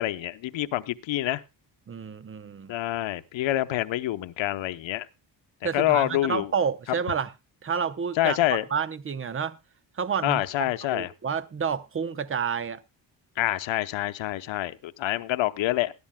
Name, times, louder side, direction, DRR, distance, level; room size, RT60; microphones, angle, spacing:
voice 1, 0.0-1.4 2.7-5.1 5.7-6.5 8.2-8.6 10.2-11.1 13.4-15.9, left 15 dB, 85° left, 0.9 m, -26 dB
voice 2, 1.9-2.7 5.6-7.3 7.6-8.4 8.7-9.6 9.9-12.8, right 6 dB, 30° right, 0.8 m, -29 dB
20.5 x 11.5 x 2.2 m
cardioid pair, 135°, 45 cm